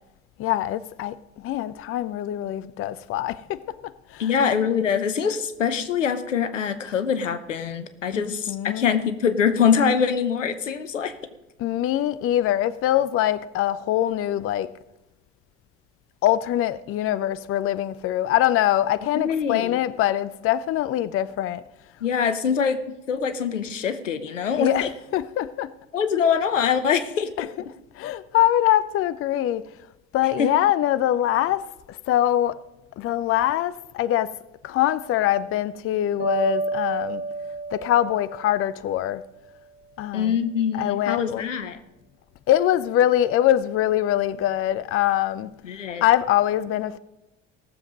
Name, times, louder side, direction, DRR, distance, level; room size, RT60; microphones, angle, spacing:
voice 1, 0.4-1.2 1.4-4.4 8.1-8.9 11.6-14.7 16.2-21.6 24.6-25.7 27.4-27.6 28.0-29.6 30.1-32.6 33.0-34.3 34.6-37.2 37.7-39.2 40.0-40.4 40.7-41.4 42.5-45.5 46.0-47.0, left 12 dB, 35° left, 0.6 m, -23 dB
voice 2, 4.2-11.1 19.1-19.8 22.0-24.9 25.9-27.5 30.4-30.5 40.1-41.8 45.6-46.0, left 7 dB, 85° left, 0.8 m, -24 dB
sound 1, 36.2-39.3, right 3 dB, 35° right, 3.9 m, -30 dB
17.5 x 7.2 x 5.1 m
figure-of-eight pair, 60°, 37 cm